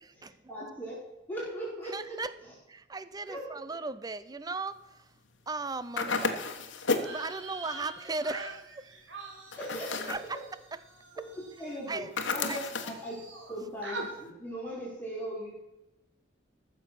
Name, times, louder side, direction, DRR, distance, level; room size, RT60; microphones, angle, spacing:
voice 1, 0.2-1.0 1.3-2.5 3.3-3.4 9.5-10.4 11.1-11.2 11.6-13.2 13.5-15.5, equal, 10° left, -7 dB, 4.1 m, -39 dB
voice 2, 1.9-2.3 2.7-5.1 5.5-6.2 7.1-9.0 10.1-10.4 11.9-12.1 12.5-12.6, right 3 dB, 20° right, 14 dB, 0.5 m, -37 dB
sound 1, 6.0-7.2 9.5-10.3 12.2-13.0, left 4 dB, 80° left, 1.2 m, -32 dB
sound 2, 6.9-12.5 12.8-13.5 13.8-14.1, right 2 dB, 80° right, 2.4 m, -45 dB
14.0 x 6.8 x 5.8 m, 0.95 s
head